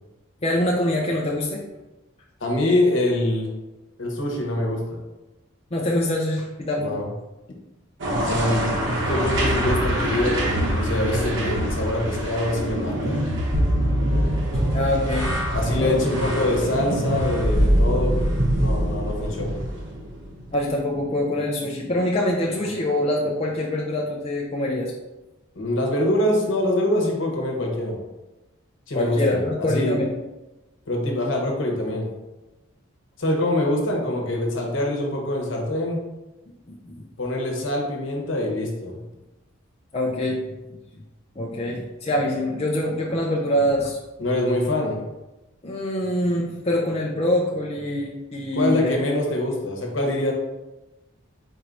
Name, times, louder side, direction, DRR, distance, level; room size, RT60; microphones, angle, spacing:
voice 1, 0.4-1.6 5.7-6.9 14.7-15.3 15.8-16.0 20.5-24.9 28.9-30.1 36.7-37.0 39.9-40.4 41.4-44.0 45.6-49.0, left 1 dB, 30° left, -3 dB, 0.5 m, -24 dB
voice 2, 2.4-3.5 4.0-5.0 6.8-7.1 8.2-8.7 9.1-13.2 15.5-18.2 18.6-19.6 25.5-28.0 28.9-30.0 30.9-32.1 33.2-36.0 37.2-39.0 44.2-45.0 48.6-50.3, left 1 dB, 65° left, 0 dB, 1.0 m, -24 dB
sound 1, 8.0-20.5, equal, 60° right, 0.9 m, -24 dB
4.3 x 2.7 x 4.6 m, 1.0 s
head